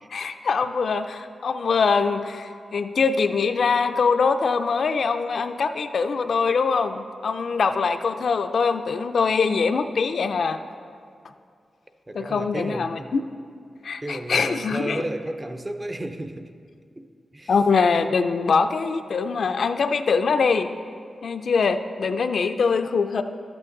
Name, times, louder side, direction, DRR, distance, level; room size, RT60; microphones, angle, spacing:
voice 1, 0.1-10.6 12.1-13.2 13.8-15.0 17.5-20.7 21.2-23.2, left 5 dB, 60° left, 9 dB, 0.4 m, -23 dB
voice 2, 12.1-13.1 14.0-16.5 17.0-17.5, right 1 dB, 15° right, 8 dB, 0.4 m, -33 dB
11.5 x 8.3 x 3.8 m, 2.3 s
wide cardioid pair, 165°, 0 cm